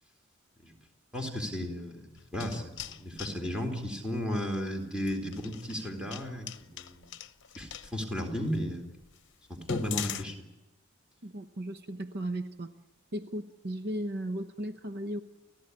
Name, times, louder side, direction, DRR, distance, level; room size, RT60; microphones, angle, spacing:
voice 1, 1.1-7.1 7.5-8.9 9.5-10.5, equal, 5° right, 3 dB, 3.7 m, -34 dB
sound 1, 2.2-3.4 5.0-7.9 8.5-8.6 9.0-9.1 9.5-10.2, left 7 dB, 60° left, 0.9 m, -39 dB
voice 2, 11.2-12.7 13.1-15.2, right 1 dB, 50° right, 9 dB, 1.0 m, -36 dB
30.0 x 15.0 x 9.8 m, 1.0 s
head